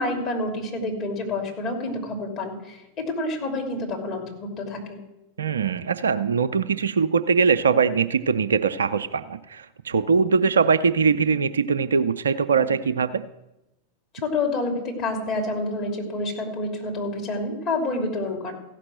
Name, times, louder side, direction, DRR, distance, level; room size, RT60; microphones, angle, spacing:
voice 1, 0.0-5.0 14.2-18.5, left 2 dB, 35° left, 1 dB, 2.9 m, -28 dB
voice 2, 5.4-13.2, right 5 dB, 70° right, 10 dB, 0.5 m, -22 dB
15.0 x 6.0 x 7.7 m, 0.93 s
figure-of-eight pair, 90°, 0 cm